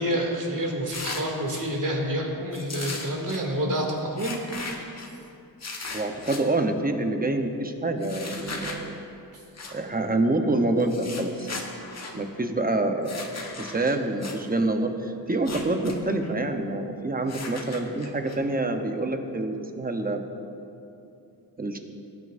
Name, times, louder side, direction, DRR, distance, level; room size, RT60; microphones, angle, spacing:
voice 1, 0.0-5.0, equal, 50° right, -1 dB, 2.4 m, -28 dB
sound 1, 0.9-1.6 2.5-3.4 4.2-5.1 5.6-6.4 8.0-8.8 9.5-9.7 10.8-12.1 13.0-14.4 15.3-16.0 16.2-16.3 17.3-18.4, left 3 dB, 40° left, 1.3 m, -37 dB
voice 2, 5.9-9.0 9.7-11.5 12.1-20.2 21.6-21.8, right 2 dB, 20° right, 5 dB, 0.9 m, -27 dB
18.5 x 9.5 x 2.6 m, 2.8 s
wide cardioid pair, 90°, 39 cm